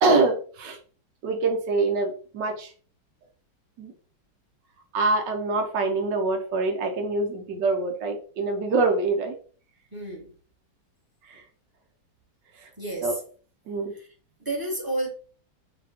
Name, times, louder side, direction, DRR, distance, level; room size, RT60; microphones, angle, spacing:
voice 1, 0.0-0.8 1.2-2.7 3.8-3.9 4.9-9.3 11.2-11.4 12.6-12.7 13.0-13.1 13.7-13.9, right 3 dB, 70° right, 1.4 m, -25 dB
voice 2, 9.9-10.3 12.8-13.1 13.9-14.1 14.4-15.1, right 1 dB, 15° right, 1.0 m, -31 dB
5.7 x 2.4 x 3.5 m
omnidirectional pair, 2.2 m